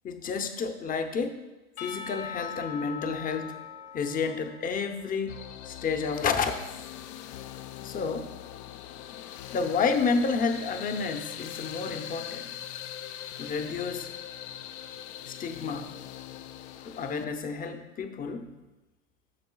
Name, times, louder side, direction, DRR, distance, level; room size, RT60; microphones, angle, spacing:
voice 1, 0.0-1.4 1.8-3.6 3.9-6.7 7.8-8.3 9.5-12.5 13.4-14.1 15.3-16.0 16.8-18.5, left 5 dB, 20° left, 7 dB, 0.7 m, -30 dB
Percussion / Church bell, 1.8-5.9, left 7 dB, 90° left, 1.8 m, -42 dB
sound 1, 5.3-17.3, left 11 dB, 55° left, 0.7 m, -41 dB
14.0 x 6.7 x 2.4 m, 1.1 s
hypercardioid pair, 95°, 42 cm